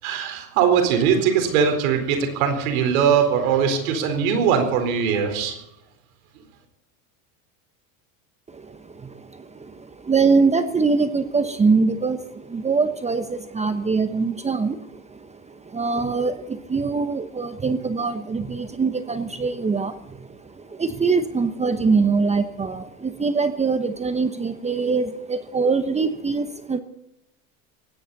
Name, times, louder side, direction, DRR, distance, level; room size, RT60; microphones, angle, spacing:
voice 1, 0.0-5.6, right 7 dB, 80° right, 6 dB, 4.4 m, -21 dB
voice 2, 8.5-26.8, right 4 dB, 15° right, 9 dB, 1.0 m, -23 dB
19.5 x 16.5 x 4.2 m, 0.82 s
supercardioid pair, 115°, 41 cm